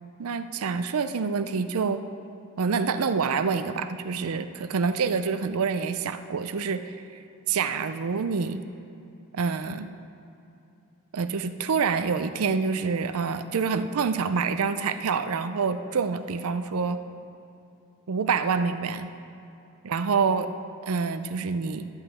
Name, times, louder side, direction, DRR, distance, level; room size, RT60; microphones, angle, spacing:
voice 1, 0.2-2.0 2.6-6.9 7.5-8.6 9.3-9.9 11.1-17.0 18.1-19.1 19.9-20.5 20.8-21.9, right 5 dB, 75° right, 10 dB, 0.5 m, -27 dB
11.5 x 5.6 x 8.0 m, 2.8 s
head